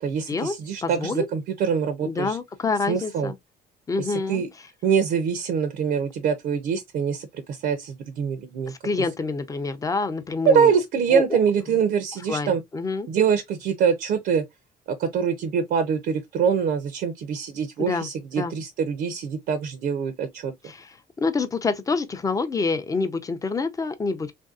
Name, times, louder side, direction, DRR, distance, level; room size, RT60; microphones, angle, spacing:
voice 1, 0.0-2.4 2.9-3.3 4.0-4.5 4.8-8.7 10.5-12.6 13.1-14.4 15.0-20.5, right 7 dB, 65° right, 0.5 m, -24 dB
voice 2, 0.8-1.3 2.0-3.4 3.9-4.4 8.7-10.7 11.1-11.4 11.7-11.8 12.3-13.1 17.8-18.1 18.3-18.5 20.6-24.3, left 4 dB, 20° left, 0.5 m, -27 dB
3.1 x 2.6 x 2.3 m
cardioid pair, 110°, 17 cm